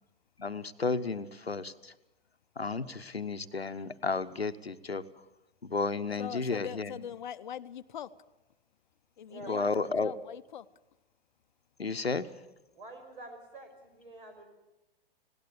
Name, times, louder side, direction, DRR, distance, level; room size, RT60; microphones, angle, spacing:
voice 1, 0.4-1.9 2.6-5.0 5.6-7.0 9.5-10.1 11.8-12.3, left 4 dB, 85° left, 12 dB, 0.9 m, -32 dB
voice 2, 2.6-3.0 6.1-6.3 9.3-9.9 12.8-14.5, right 2 dB, 60° right, 7 dB, 5.6 m, -47 dB
voice 3, 6.2-8.1 9.2-10.7, left 9 dB, 50° left, 13 dB, 0.8 m, -42 dB
19.5 x 17.5 x 8.5 m, 0.94 s
figure-of-eight pair, 110°, 30 cm